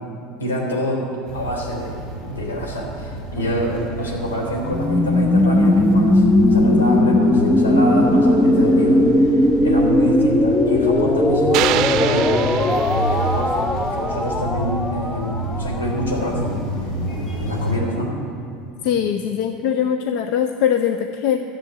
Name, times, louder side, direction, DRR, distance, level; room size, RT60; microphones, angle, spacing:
voice 1, 0.4-1.0 1.3-6.2 6.5-13.5 13.9-16.9 17.4-18.1, equal, 90° left, -1 dB, 3.2 m, -26 dB
sound 1, 1.2-17.8, equal, 50° left, 3.8 m, -30 dB
sound 2, 4.6-16.4, left 1 dB, 15° left, 0.7 m, -18 dB
sound 3, 11.5-13.7, right 12 dB, 55° right, 0.6 m, -26 dB
voice 2, 18.8-21.4, left 9 dB, 65° left, 7 dB, 0.6 m, -21 dB
13.0 x 7.7 x 7.6 m, 2.6 s
hypercardioid pair, 80°, 0 cm